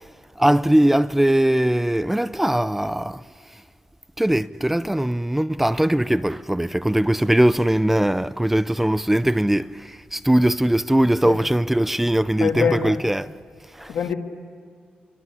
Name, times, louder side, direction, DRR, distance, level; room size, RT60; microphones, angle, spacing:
voice 1, 0.4-3.2 4.2-13.3 13.7-13.9, right 1 dB, 10° right, 0.6 m, -20 dB
voice 2, 12.4-12.9 13.9-14.1, left 7 dB, 85° left, 2.5 m, -23 dB
28.5 x 24.5 x 7.3 m
cardioid pair, 90°, 3 cm